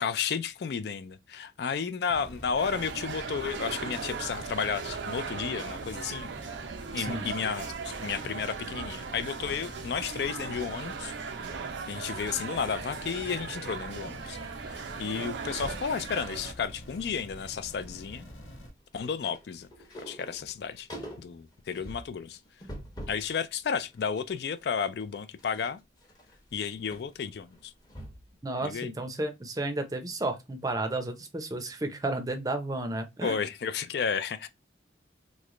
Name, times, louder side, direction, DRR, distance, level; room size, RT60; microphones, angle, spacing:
voice 1, 0.0-6.3 6.9-11.1 11.9-14.4 14.7-18.3 18.9-19.7 20.0-20.9 21.2-22.4 23.1-25.8 26.5-27.7 28.6-28.9 33.2-34.5, left 6 dB, 60° left, 0.3 m, -32 dB
sound 1, 2.1-18.7, equal, 80° left, 1.0 m, -46 dB
sound 2, 2.6-16.5, right 5 dB, 80° right, 0.5 m, -38 dB
sound 3, 14.2-14.3 14.6-14.8 15.1-15.9 16.5-17.1 17.4-23.3 23.7-28.4 28.7-28.8, equal, 20° left, 0.8 m, -46 dB
voice 2, 28.4-33.4, right 2 dB, 20° right, 0.5 m, -32 dB
3.1 x 2.1 x 3.6 m
head